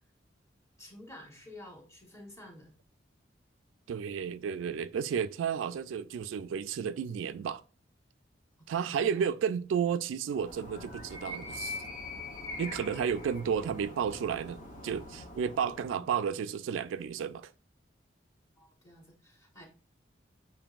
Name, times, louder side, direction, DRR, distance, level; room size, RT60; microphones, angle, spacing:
voice 1, 0.8-2.7 8.9-9.3 15.9-16.1 18.6-19.7, left 1 dB, 15° left, 1.2 m, -51 dB
voice 2, 3.9-7.6 8.7-11.8 12.6-17.5, right 7 dB, 85° right, 0.3 m, -32 dB
Animal, 10.3-16.1, left 2 dB, 45° left, 0.9 m, -43 dB
6.9 x 3.0 x 2.4 m
head